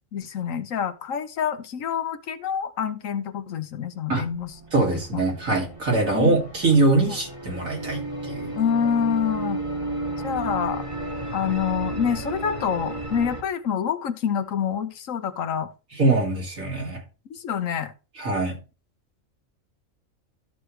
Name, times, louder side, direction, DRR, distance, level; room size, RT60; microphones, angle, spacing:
voice 1, 0.1-4.5 5.1-5.2 6.1-6.4 7.1-7.2 8.5-9.6 10.2-10.9 11.3-15.7 17.3-17.9, left 8 dB, 75° left, 1.3 m, -27 dB
sound 1, 4.3-13.4, right 2 dB, 25° right, 2.4 m, -33 dB
voice 2, 4.7-8.6 16.0-17.0 18.2-18.5, right 3 dB, 85° right, 2.9 m, -23 dB
13.0 x 6.4 x 3.3 m
omnidirectional pair, 1.4 m